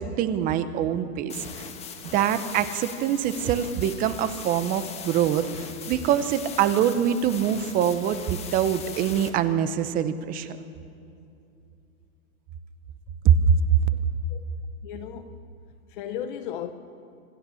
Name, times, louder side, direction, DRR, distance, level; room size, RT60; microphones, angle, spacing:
voice 1, 0.0-1.6 2.1-10.6 13.2-13.8, right 8 dB, 20° right, 0.9 m, -24 dB
sound 1, 1.3-9.3, left 7 dB, 15° left, 1.3 m, -40 dB
voice 2, 14.8-15.5 15.9-16.7, left 9 dB, 35° left, 1.0 m, -35 dB
26.5 x 17.0 x 7.1 m
hypercardioid pair, 145°, 43 cm